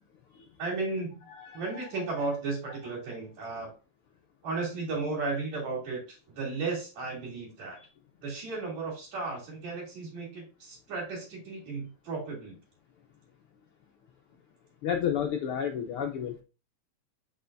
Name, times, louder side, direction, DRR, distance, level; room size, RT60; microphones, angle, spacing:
voice 1, 0.6-1.2 1.5-3.7 4.4-7.8 8.2-12.6, right 3 dB, 70° right, -2 dB, 4.2 m, -34 dB
voice 2, 1.4-1.8 14.8-16.4, left 8 dB, 75° left, 3 dB, 1.3 m, -31 dB
7.9 x 6.4 x 2.6 m, 0.34 s
omnidirectional pair, 3.3 m